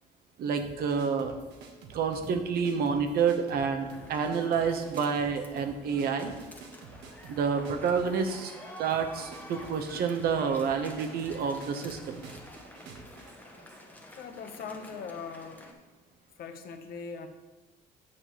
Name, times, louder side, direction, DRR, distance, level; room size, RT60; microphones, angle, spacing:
voice 1, 0.4-1.3 1.9-6.3 7.3-12.2, right 6 dB, 65° right, 6 dB, 0.9 m, -29 dB
sound 1, 0.6-13.9, right 4 dB, 85° right, 1.1 m, -49 dB
sound 2, 3.5-15.7, left 1 dB, 10° left, 1.1 m, -49 dB
voice 2, 14.2-15.7 16.4-17.3, left 5 dB, 60° left, 7 dB, 0.9 m, -40 dB
8.7 x 6.6 x 3.0 m, 1.2 s
cardioid pair, 110°, 17 cm